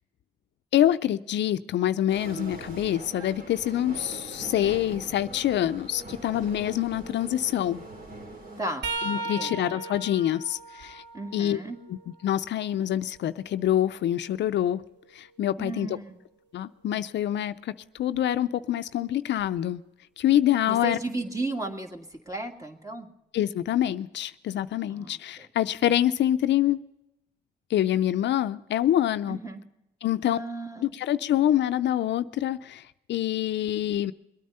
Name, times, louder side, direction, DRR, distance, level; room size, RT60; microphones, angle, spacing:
voice 1, 0.7-7.8 9.0-11.0 11.3-11.6 11.9-14.8 15.1-16.0 16.5-19.8 20.2-21.0 23.3-26.8 27.7-29.4 30.0-30.4 30.8-32.8 33.1-34.1, left 12 dB, 80° left, 13 dB, 0.4 m, -26 dB
sound 1, 2.1-8.6, right 2 dB, 50° right, 2.8 m, -42 dB
voice 2, 8.6-8.9 9.4-9.6 11.1-11.8 15.6-16.2 20.7-23.1 24.9-25.5 29.3-29.6 30.2-30.9, right 2 dB, 20° right, 5 dB, 1.9 m, -35 dB
sound 2, 8.8-12.6 13.1-15.1 18.0-18.2 19.4-19.6 20.9-21.0, right 3 dB, 80° right, 1.4 m, -38 dB
22.0 x 9.4 x 5.4 m, 0.94 s
cardioid pair, 60°, 18 cm